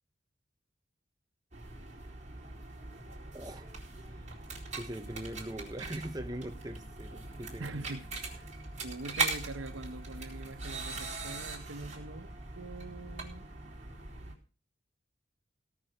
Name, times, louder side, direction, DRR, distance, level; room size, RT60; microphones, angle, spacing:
sound 1, 1.5-14.3, right 3 dB, 35° right, 4.2 m, -40 dB
voice 1, 3.3-3.7 4.1-4.3 4.7-7.8, right 1 dB, 20° right, 0.8 m, -41 dB
voice 2, 7.6-8.5 8.8-13.5, right 2 dB, 90° right, 1.2 m, -44 dB
17.5 x 6.4 x 6.8 m
head